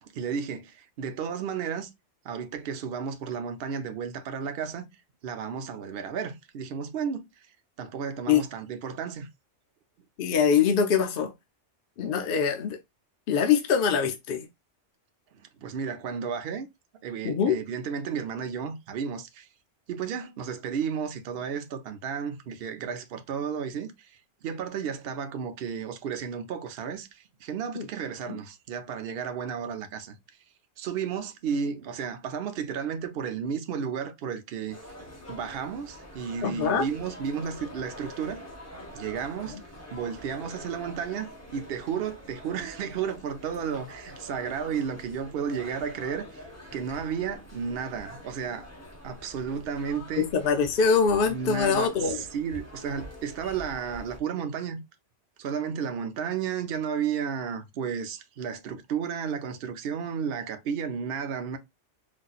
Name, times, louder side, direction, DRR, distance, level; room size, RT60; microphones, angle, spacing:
voice 1, 0.0-1.9 2.2-4.9 5.2-7.5 7.8-9.3 15.6-16.7 17.0-19.5 19.9-30.2 30.8-34.8 35.3-38.4 38.9-39.6 39.9-46.4 46.7-48.7 49.0-50.3 51.3-54.8 55.4-61.6, right 7 dB, 60° right, 0.8 m, -33 dB
voice 2, 10.2-11.3 12.0-12.8 13.3-14.5 17.2-17.6 27.8-27.9 28.3-28.4 36.4-36.9 39.5-39.6 50.2-52.2, left 6 dB, 60° left, 0.6 m, -24 dB
sound 1, 34.7-54.2, left 1 dB, 15° left, 0.9 m, -45 dB
4.0 x 2.5 x 2.3 m
omnidirectional pair, 1.2 m